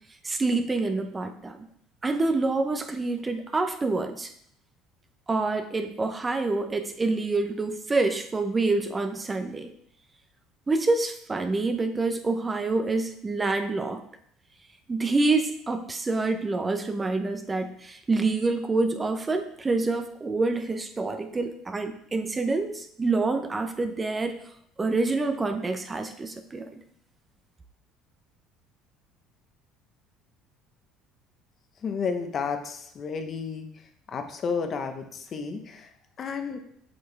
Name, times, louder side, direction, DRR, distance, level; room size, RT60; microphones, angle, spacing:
voice 1, 0.2-1.7 2.0-4.3 5.3-9.7 10.7-14.0 14.9-24.4 24.8-26.8, right 3 dB, 20° right, 7 dB, 0.7 m, -27 dB
voice 2, 31.8-33.7 34.1-35.0 35.3-35.8 36.2-36.6, left 5 dB, 45° left, 7 dB, 1.0 m, -31 dB
8.0 x 5.4 x 3.4 m, 0.68 s
supercardioid pair, 95°, 0 cm